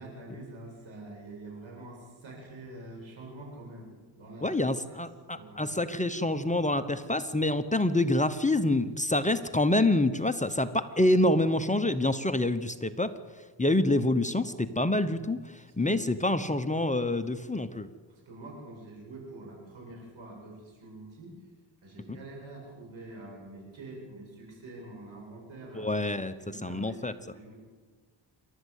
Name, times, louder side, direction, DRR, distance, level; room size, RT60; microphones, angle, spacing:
voice 1, 0.0-3.9 4.2-5.7 15.7-16.0 18.1-21.4 21.8-25.9 26.3-27.5, right 2 dB, 85° right, 0 dB, 7.6 m, -46 dB
voice 2, 4.4-13.1 13.6-15.4 15.8-17.9 25.8-26.3 26.6-27.1, left 1 dB, 15° left, 10 dB, 0.9 m, -26 dB
27.5 x 12.5 x 8.3 m, 1.5 s
cardioid pair, 90°, 46 cm